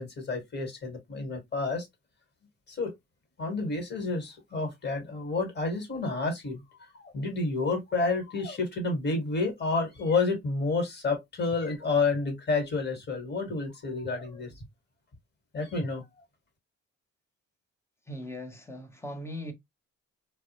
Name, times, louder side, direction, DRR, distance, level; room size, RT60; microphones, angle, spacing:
voice 1, 0.0-1.9 2.7-2.9 3.4-6.6 6.9-14.5 15.5-16.0, left 3 dB, 35° left, 1.2 m, -30 dB
voice 2, 18.1-19.5, equal, 10° left, 0.7 m, -39 dB
2.2 x 2.0 x 2.8 m
cardioid pair, 90°, 30 cm